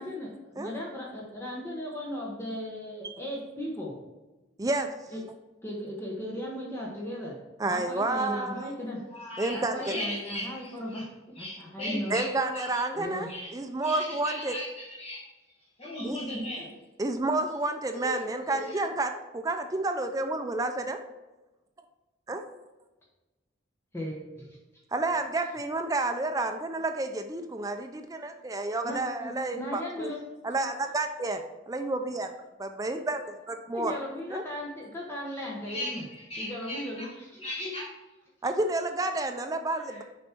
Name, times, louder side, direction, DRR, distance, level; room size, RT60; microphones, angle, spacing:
voice 1, 0.0-4.0 5.1-5.2 5.6-7.4 7.7-9.0 9.5-11.1 11.4-12.6 12.9-13.3 23.9-24.6 28.8-30.2 33.7-36.0 36.3-37.4, equal, 15° left, -3 dB, 1.1 m, -37 dB
voice 2, 4.6-4.9 7.6-8.7 9.4-10.0 12.1-14.5 16.0-16.2 17.0-21.0 22.3-22.4 24.9-30.1 30.4-32.3 32.6-33.9 34.3-34.4 38.4-40.0, right 2 dB, 20° right, 6 dB, 0.4 m, -30 dB
voice 3, 9.1-11.0 11.4-12.3 12.5-12.8 13.3-13.5 13.8-14.7 15.0-15.2 15.8-16.7 17.9-18.1 18.5-18.8 35.7-37.0 37.4-37.9, left 1 dB, 30° left, -7 dB, 1.5 m, -37 dB
6.9 x 5.2 x 4.4 m, 1.1 s
head